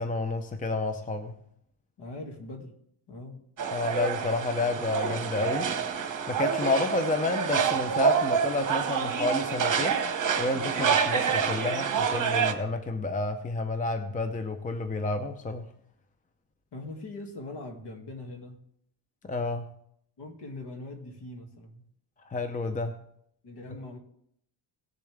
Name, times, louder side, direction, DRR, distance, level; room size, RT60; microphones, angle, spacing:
voice 1, 0.0-1.3 3.7-5.7 6.3-10.0 10.4-15.6 19.3-19.6 22.3-23.0, left 2 dB, 15° left, 8 dB, 0.6 m, -30 dB
voice 2, 2.0-2.7 3.1-3.4 16.7-18.6 20.2-21.8 23.4-24.0, left 2 dB, 60° left, 3 dB, 2.3 m, -41 dB
sound 1, 3.6-12.5, right 7 dB, 40° right, 1.3 m, -27 dB
18.0 x 6.9 x 3.4 m, 0.70 s
cardioid pair, 125°, 47 cm